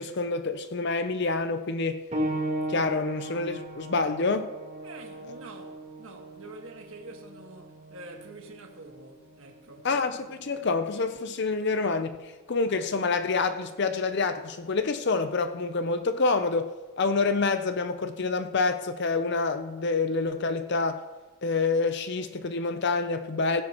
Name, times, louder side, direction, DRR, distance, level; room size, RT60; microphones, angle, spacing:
voice 1, 0.0-2.0 2.7-4.5 9.8-21.0 21.4-23.6, left 4 dB, 55° left, 0.6 m, -27 dB
sound 1, 2.1-12.3 13.3-13.4 14.1-14.2, right 1 dB, 35° right, 3.7 m, -38 dB
voice 2, 4.8-9.9, right 2 dB, 70° right, 1.7 m, -46 dB
17.0 x 16.0 x 3.0 m
head